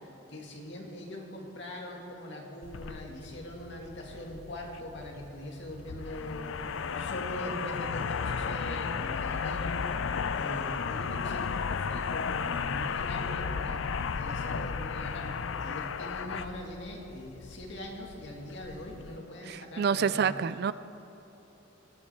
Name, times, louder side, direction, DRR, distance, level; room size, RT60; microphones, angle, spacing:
voice 1, 0.3-6.6 7.0-9.7 10.3-13.8 14.2-20.4, left 1 dB, 60° left, 0 dB, 2.2 m, -42 dB
sound 1, 2.6-19.2, left 6 dB, 75° left, 0.5 m, -34 dB
voice 2, 19.5-20.7, right 6 dB, 50° right, 15 dB, 0.3 m, -28 dB
19.5 x 12.0 x 4.5 m, 3.0 s
head